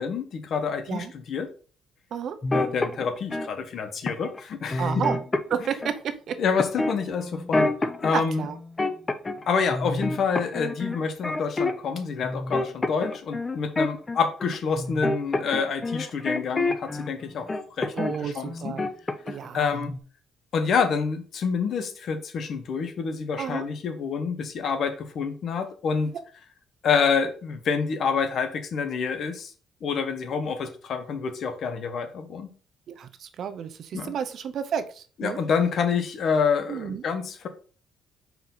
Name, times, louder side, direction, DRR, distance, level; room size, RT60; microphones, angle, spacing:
voice 1, 0.0-1.5 2.5-5.0 6.4-8.4 9.5-17.5 17.8-18.7 19.5-19.9 20.5-26.1 26.8-29.5 29.8-32.5 33.9-34.1 35.2-37.5, left 5 dB, 50° left, 9 dB, 0.9 m, -27 dB
sound 1, 2.4-3.5 4.1-4.4 4.7-6.0 6.6-8.1 8.5-9.4 9.7-11.9 12.2-17.1 17.5-18.2 18.5-19.5 19.7-20.0, left 2 dB, 20° left, 0.5 m, -28 dB
voice 2, 4.8-5.2 5.5-6.4 8.1-8.6 18.0-18.9 19.3-19.8 23.4-23.7 32.9-35.4 36.7-37.0, right 8 dB, 55° right, 10 dB, 0.6 m, -31 dB
5.3 x 4.6 x 3.9 m, 0.40 s
cardioid pair, 145°, 0 cm